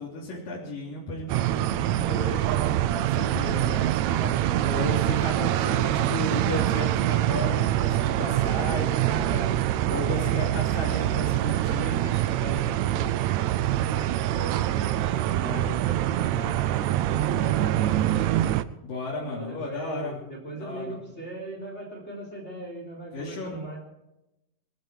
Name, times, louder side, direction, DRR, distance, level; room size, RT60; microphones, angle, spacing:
voice 1, 0.0-4.3 4.6-9.6 9.9-13.2 15.2-15.7 18.8-20.2 20.5-21.0 23.1-23.6, left 1 dB, 80° left, -6 dB, 5.0 m, -34 dB
sound 1, 1.3-18.6, right 13 dB, 80° right, 1.6 m, -25 dB
voice 2, 4.3-4.9 5.3-6.4 9.0-9.4 10.0-10.6 13.6-18.4 19.3-23.8, right 2 dB, 20° left, -1 dB, 3.8 m, -39 dB
21.5 x 13.5 x 4.7 m, 0.93 s
omnidirectional pair, 3.9 m